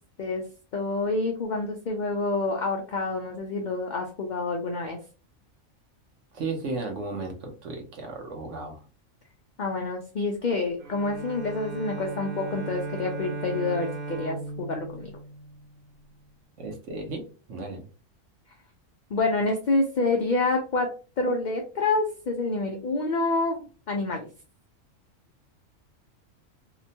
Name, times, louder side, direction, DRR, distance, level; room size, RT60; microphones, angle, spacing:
voice 1, 0.7-5.0 9.6-15.1 19.1-24.3, left 3 dB, 85° left, 2 dB, 0.4 m, -27 dB
voice 2, 6.3-8.8 16.6-17.9, right 3 dB, 70° right, 3 dB, 1.1 m, -34 dB
Bowed string instrument, 10.8-16.0, right 3 dB, 55° right, 0.7 m, -37 dB
2.8 x 2.2 x 2.7 m, 0.35 s
omnidirectional pair, 1.4 m